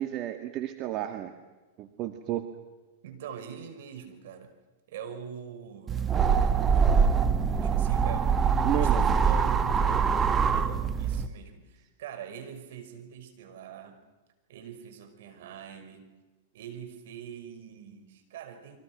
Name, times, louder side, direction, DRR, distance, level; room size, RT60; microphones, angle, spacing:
voice 1, 0.0-1.3 1.8-2.5 8.6-9.1, right 12 dB, 40° right, 6 dB, 2.0 m, -32 dB
voice 2, 3.0-4.5 4.9-7.3 7.6-14.0 14.5-16.1 16.5-18.8, right 8 dB, 65° right, 7 dB, 5.6 m, -44 dB
sound 1, 5.9-11.3, right 6 dB, 20° right, 1.4 m, -24 dB
29.0 x 24.5 x 6.2 m, 1.2 s
hypercardioid pair, 115°, 0 cm